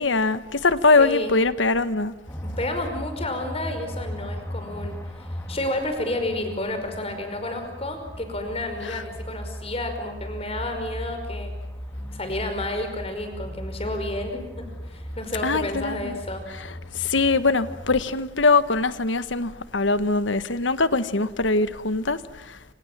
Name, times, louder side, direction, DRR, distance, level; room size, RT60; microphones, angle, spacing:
voice 1, 0.0-2.1 8.8-9.0 15.4-16.2 16.9-22.2 22.5-22.6, left 3 dB, 80° left, 1.4 m, -22 dB
voice 2, 1.0-1.3 2.4-5.0 5.5-11.5 12.1-14.6 14.9-16.4, left 1 dB, 30° left, 5.3 m, -30 dB
sound 1, 2.3-18.0, equal, 15° left, 2.8 m, -37 dB
28.5 x 27.0 x 7.5 m
head